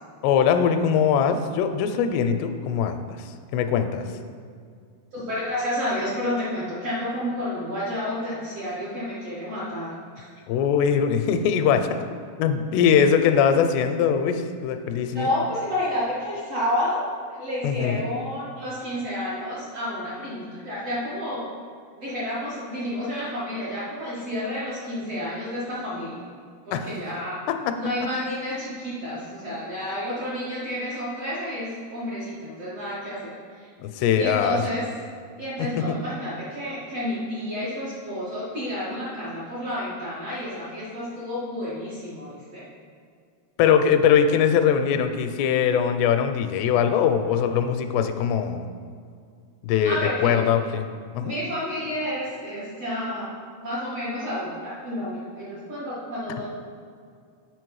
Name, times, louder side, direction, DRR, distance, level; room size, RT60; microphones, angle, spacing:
voice 1, 0.2-4.1 10.5-11.9 12.4-15.3 17.6-18.1 26.7-26.9 27.5-27.7 33.8-34.6 35.6-36.0 43.6-48.7 49.6-50.9 51.1-51.3, left 7 dB, 85° left, 8 dB, 2.7 m, -22 dB
voice 2, 5.1-10.3 15.1-21.5 22.0-26.2 26.7-27.4 27.7-33.7 34.2-34.8 35.4-42.7 49.8-50.5 51.2-53.3 53.6-56.4, left 1 dB, 50° right, -9 dB, 2.0 m, -30 dB
7.7 x 6.5 x 4.7 m, 2.2 s
omnidirectional pair, 4.8 m